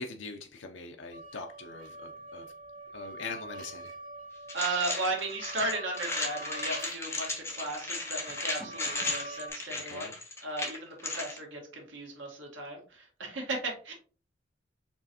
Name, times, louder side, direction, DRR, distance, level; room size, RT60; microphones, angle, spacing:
voice 1, 0.0-2.5 2.9-3.9 9.7-10.1, left 4 dB, 75° left, 0.5 m, -42 dB
sound 1, 1.1-9.5, right 2 dB, 50° right, 1.7 m, -45 dB
sound 2, 4.5-11.4, left 2 dB, 15° left, 0.9 m, -35 dB
voice 2, 4.5-10.1 10.4-13.9, right 2 dB, 80° right, 1.6 m, -35 dB
4.4 x 3.2 x 2.9 m
head